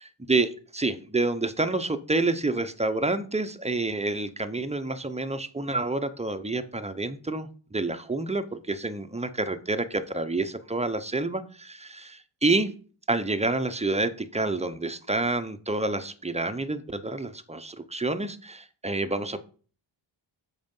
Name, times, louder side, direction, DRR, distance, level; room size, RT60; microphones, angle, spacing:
voice 1, 0.3-12.7 13.1-19.4, right 2 dB, 15° right, 10 dB, 0.8 m, -28 dB
7.7 x 4.8 x 5.4 m, 0.40 s
cardioid pair, 70°, 48 cm